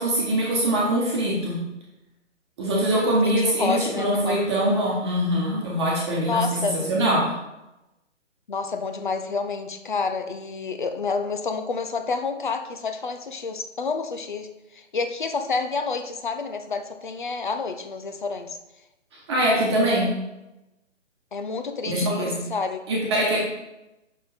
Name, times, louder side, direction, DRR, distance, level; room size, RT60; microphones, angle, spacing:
voice 1, 0.0-1.6 2.6-6.5 6.9-7.3 19.3-20.1 21.9-22.4 22.9-23.4, right 1 dB, 20° right, -4 dB, 1.2 m, -23 dB
voice 2, 2.9-4.4 6.2-6.9 8.5-18.6 21.3-22.8, left 4 dB, 40° left, 7 dB, 0.6 m, -29 dB
6.4 x 5.5 x 4.2 m, 0.94 s
figure-of-eight pair, 140°, 38 cm